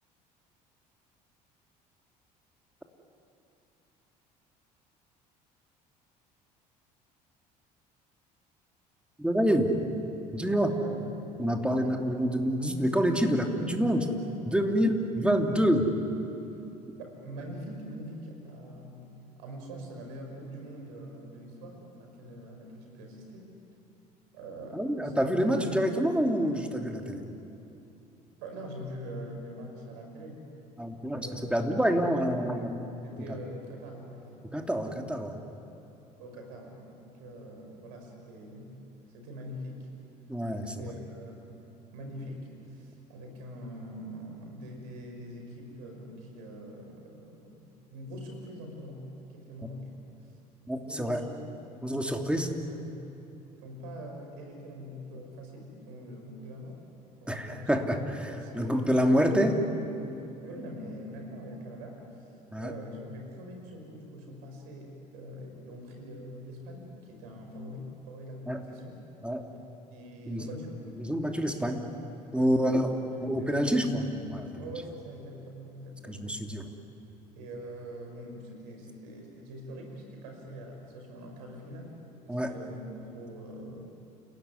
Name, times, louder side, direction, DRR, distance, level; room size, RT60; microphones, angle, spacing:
voice 1, 9.2-9.7 10.3-10.8 11.4-14.1 14.4-15.9 24.7-27.2 30.8-32.8 34.5-35.4 40.3-40.7 50.7-51.2 51.8-52.5 57.3-59.6 60.0-60.2 62.5-62.7 68.5-68.6 69.2-69.4 70.3-70.5 71.0-71.8 72.3-72.9 73.2-74.5 76.1-76.7 82.3-82.5, equal, 5° right, 3 dB, 3.0 m, -27 dB
voice 2, 16.8-19.1 19.4-23.5 24.3-25.8 28.4-30.5 31.1-31.6 33.0-34.4 36.2-38.7 39.1-39.9 40.6-41.4 41.9-49.0 49.3-49.9 50.2-50.3 50.8-51.5 52.0-53.0 53.6-57.7 58.0-59.4 60.4-69.0 69.9-70.8 72.3-73.9 74.6-76.3 77.4-82.0 82.2-83.8, equal, 70° right, 3 dB, 5.5 m, -44 dB
29.5 x 17.5 x 9.8 m, 2.8 s
figure-of-eight pair, 60°, 21 cm